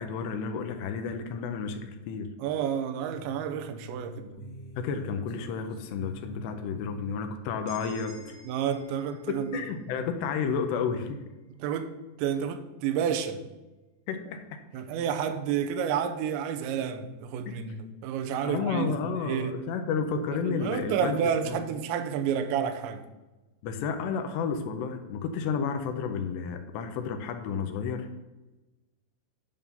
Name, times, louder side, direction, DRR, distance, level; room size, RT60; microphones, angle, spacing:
voice 1, 0.0-2.3 4.8-8.4 9.3-11.2 14.1-14.6 17.5-17.6 18.4-21.2 21.5-21.6 23.6-28.2, left 6 dB, 80° left, 6 dB, 2.7 m, -31 dB
voice 2, 2.4-4.3 8.5-9.6 11.6-13.4 14.7-19.6 20.4-23.0, right 8 dB, 80° right, 7 dB, 2.9 m, -30 dB
sound 1, 3.1-8.8, right 1 dB, 50° left, 2.2 m, -48 dB
sound 2, 7.7-11.5, right 1 dB, 55° right, 3.6 m, -54 dB
11.0 x 3.7 x 6.9 m, 1.1 s
omnidirectional pair, 5.4 m